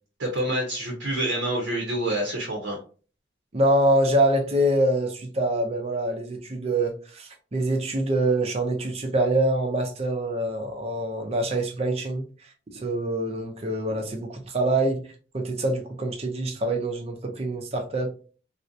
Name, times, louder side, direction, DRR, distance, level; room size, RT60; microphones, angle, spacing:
voice 1, 0.2-2.8, right 1 dB, 80° right, 0.6 m, -27 dB
voice 2, 3.5-12.2 12.7-15.1 15.3-18.1, right 1 dB, 35° right, 0.5 m, -25 dB
2.6 x 2.0 x 2.4 m
head